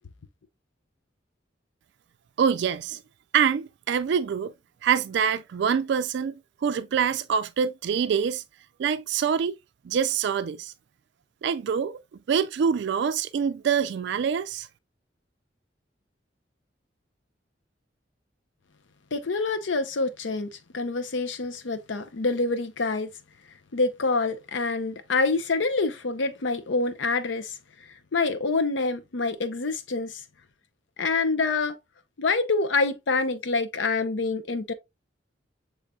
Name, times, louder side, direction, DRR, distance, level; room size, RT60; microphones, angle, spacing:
voice 1, 2.4-3.0 3.3-4.5 4.8-8.4 8.8-9.6 9.8-10.7 11.4-12.0 12.3-14.7, right 7 dB, 65° right, 0.3 m, -25 dB
voice 2, 19.1-23.1 23.7-27.6 28.1-30.2 31.0-31.8 32.2-34.7, left 3 dB, 85° left, 0.7 m, -26 dB
6.6 x 3.2 x 2.3 m
head